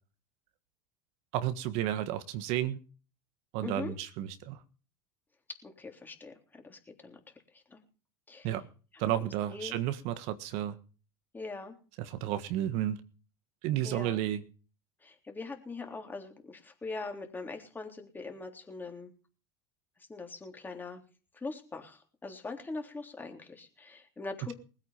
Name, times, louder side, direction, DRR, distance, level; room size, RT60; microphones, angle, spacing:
voice 1, 1.3-2.8 3.5-4.6 8.4-8.6 9.0-10.7 12.0-13.0 13.6-14.4, right 12 dB, 60° right, 11 dB, 1.6 m, -32 dB
voice 2, 3.6-3.9 5.6-6.3 6.7-7.2 7.7-7.8 8.3-8.5 9.2-9.8 11.3-11.7 13.8-14.2 15.0-19.1 20.1-21.0 21.4-24.5, left 3 dB, 15° left, 4 dB, 3.5 m, -42 dB
20.0 x 8.9 x 5.8 m, 0.38 s
supercardioid pair, 115°, 12 cm